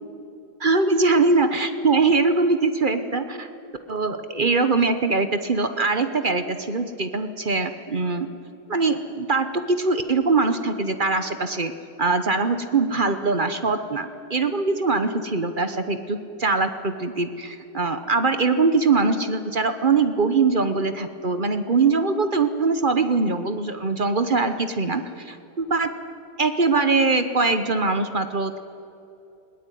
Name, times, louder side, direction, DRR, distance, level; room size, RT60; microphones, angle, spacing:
voice 1, 0.6-3.5 3.9-8.3 8.7-11.7 12.0-25.9 26.4-28.6, right 3 dB, 35° right, 9 dB, 0.9 m, -22 dB
20.0 x 19.5 x 9.2 m, 2.8 s
omnidirectional pair, 1.9 m